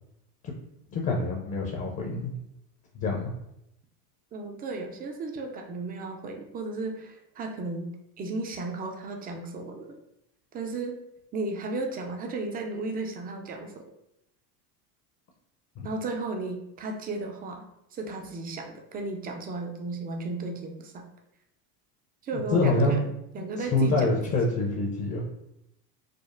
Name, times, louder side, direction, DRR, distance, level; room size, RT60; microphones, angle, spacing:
voice 1, 0.9-2.3 2.9-3.3 15.8-15.9 22.3-23.0 23.4-25.2, left 2 dB, 35° left, -1 dB, 0.7 m, -26 dB
voice 2, 4.3-10.0 10.5-11.0 11.3-13.8 15.8-17.6 17.9-21.1 22.2-23.1 23.3-24.2, right 3 dB, 20° right, 3 dB, 0.4 m, -34 dB
5.0 x 2.0 x 2.5 m, 0.83 s
supercardioid pair, 110°, 47 cm